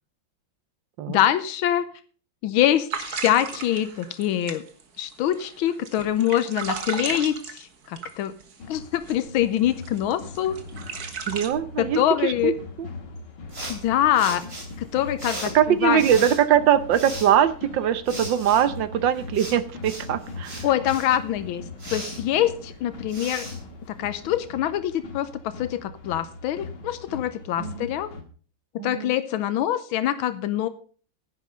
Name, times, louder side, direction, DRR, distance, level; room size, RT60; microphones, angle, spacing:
voice 1, 1.1-1.8 2.4-4.6 5.0-8.3 8.7-10.6 11.8-12.5 13.7-14.4 14.8-16.0 20.6-21.6 21.9-23.5 24.0-28.1 28.8-30.7, left 11 dB, 85° left, 13 dB, 1.6 m, -24 dB
sound 1, 2.9-8.6 9.1-9.2 9.6-11.5, right 6 dB, 50° right, 1.8 m, -34 dB
sound 2, 8.6-28.2, left 3 dB, 60° left, 2.3 m, -40 dB
voice 2, 11.3-12.5 12.8-12.9 15.5-20.6 27.6-27.9 28.8-29.1, right 9 dB, 70° right, 14 dB, 1.5 m, -22 dB
sound 3, 13.5-24.4, right 2 dB, 30° right, 3.3 m, -39 dB
10.5 x 10.0 x 5.3 m, 0.41 s
omnidirectional pair, 2.2 m